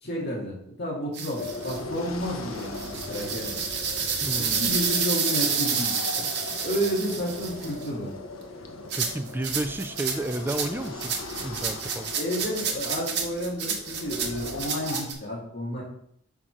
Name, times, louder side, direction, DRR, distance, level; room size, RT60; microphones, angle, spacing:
voice 1, 0.0-3.6 4.3-8.1 12.1-15.8, equal, 50° left, -5 dB, 2.2 m, -31 dB
sound 1, 1.1-1.8 2.6-7.9 8.9-15.1, right 6 dB, 50° right, 1.2 m, -29 dB
sound 2, 1.4-15.0, left 2 dB, 80° left, 1.0 m, -39 dB
voice 2, 4.2-4.7 9.0-11.2 11.4-12.1, right 1 dB, 10° right, 8 dB, 0.4 m, -31 dB
5.8 x 3.9 x 6.1 m, 0.69 s
head